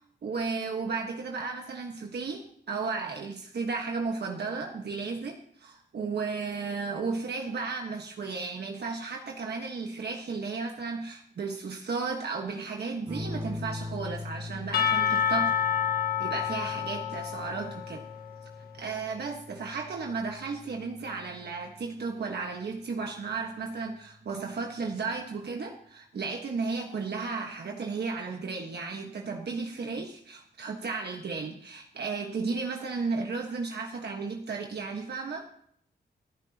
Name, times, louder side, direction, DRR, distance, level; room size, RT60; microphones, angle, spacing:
voice 1, 0.2-15.5 16.2-18.0 18.8-35.5, right 4 dB, 70° right, 2 dB, 1.5 m, -34 dB
sound 1, 13.1-22.2 23.6-24.2, left 2 dB, 25° right, 2.1 m, -42 dB
Percussion / Church bell, 14.7-18.6, left 9 dB, 60° left, 1.8 m, -29 dB
29.5 x 10.5 x 2.9 m, 0.65 s
wide cardioid pair, 135°, 18 cm